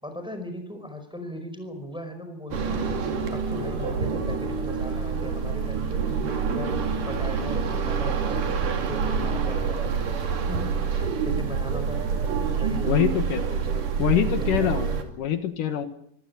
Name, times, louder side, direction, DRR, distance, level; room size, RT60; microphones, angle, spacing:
voice 1, 0.0-10.0 10.5-13.9 14.3-15.1, left 1 dB, ahead, 7 dB, 4.5 m, -38 dB
sound 1, 2.5-15.0, right 6 dB, 70° right, 4.1 m, -27 dB
voice 2, 12.9-13.4 14.0-14.9 15.2-15.9, left 10 dB, 75° left, 9 dB, 2.9 m, -24 dB
26.5 x 15.5 x 9.6 m, 0.74 s
omnidirectional pair, 3.9 m